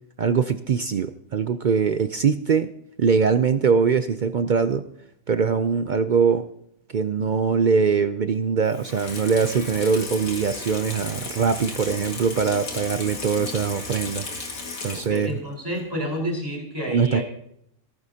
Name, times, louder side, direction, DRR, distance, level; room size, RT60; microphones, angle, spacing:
voice 1, 0.2-2.7 3.0-4.8 5.3-6.4 6.9-14.3 14.8-15.3 16.9-17.2, right 6 dB, 60° right, 10 dB, 0.5 m, -22 dB
Water tap faucet / Sink (filling or washing), 8.7-15.4 15.7-15.8, left 3 dB, 80° left, 2.3 m, -35 dB
voice 2, 14.9-17.2, equal, 15° right, -2 dB, 4.5 m, -29 dB
16.0 x 14.0 x 2.8 m, 0.69 s
omnidirectional pair, 1.4 m